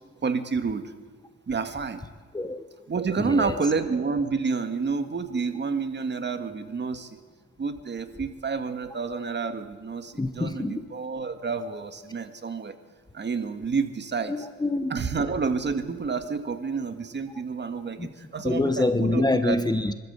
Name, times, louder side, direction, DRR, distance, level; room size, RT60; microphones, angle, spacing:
voice 1, 0.2-0.9 1.5-2.0 2.9-7.2 7.6-12.8 13.1-14.5 14.9-19.6, right 4 dB, 35° right, 8 dB, 1.8 m, -29 dB
voice 2, 3.2-3.6 10.2-10.9 14.3-14.9 18.0-18.1 18.4-19.9, left 2 dB, 15° left, 10 dB, 1.0 m, -26 dB
25.0 x 13.5 x 8.2 m, 1.4 s
cardioid pair, 90°, 30 cm